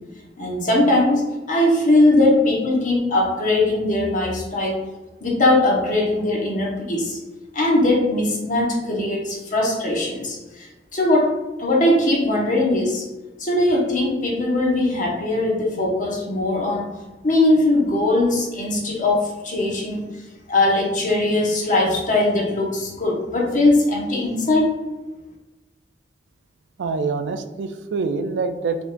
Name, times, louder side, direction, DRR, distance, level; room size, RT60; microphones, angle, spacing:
voice 1, 0.4-4.8 5.2-7.2 7.5-13.0 13.4-16.9 17.2-20.0 20.5-24.7, left 2 dB, 45° left, -2 dB, 1.2 m, -20 dB
voice 2, 26.8-28.8, right 4 dB, 80° right, 8 dB, 0.4 m, -25 dB
4.9 x 3.8 x 2.5 m, 1.1 s
head